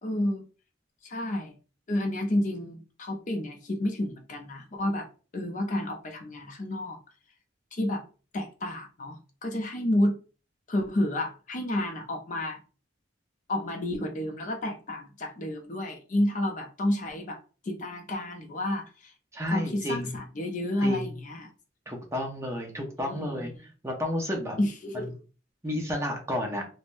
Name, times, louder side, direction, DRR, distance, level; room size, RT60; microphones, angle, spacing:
voice 1, 0.0-0.5 1.0-1.5 1.9-5.1 5.3-7.0 7.7-8.0 8.3-10.2 10.7-12.6 13.5-17.4 17.6-19.1 19.5-21.5 23.0-23.5 24.6-25.0, left 1 dB, 40° left, 0.5 m, -30 dB
voice 2, 19.3-20.2 20.8-21.2 21.9-24.6 24.9-25.1 25.6-26.7, left 1 dB, 15° right, 0.6 m, -32 dB
3.4 x 2.1 x 2.5 m
head